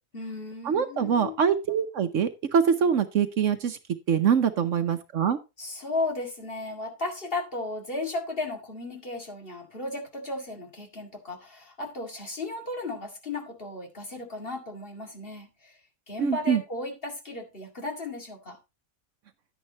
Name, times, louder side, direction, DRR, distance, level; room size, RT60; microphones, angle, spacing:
voice 1, 0.1-1.4 5.6-15.8 16.1-18.6, left 2 dB, 40° left, 2.3 m, -35 dB
voice 2, 0.7-3.8 4.1-5.4 16.2-16.6, right 7 dB, 65° right, 1.1 m, -24 dB
10.5 x 9.9 x 2.9 m
omnidirectional pair, 1.5 m